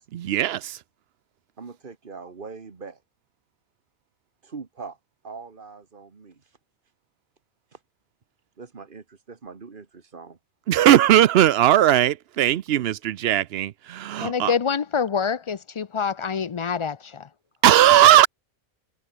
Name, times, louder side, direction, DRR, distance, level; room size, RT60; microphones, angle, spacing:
voice 1, 0.1-0.8 10.7-14.5 17.6-18.3, right 12 dB, 75° right, 0.9 m, -18 dB
voice 2, 1.6-3.0 4.4-5.0 5.2-6.4 7.7-7.8 8.6-10.4, right 4 dB, 55° right, 1.7 m, -41 dB
voice 3, 14.2-17.3, left 6 dB, 40° left, 0.5 m, -26 dB
omnidirectional pair, 1.1 m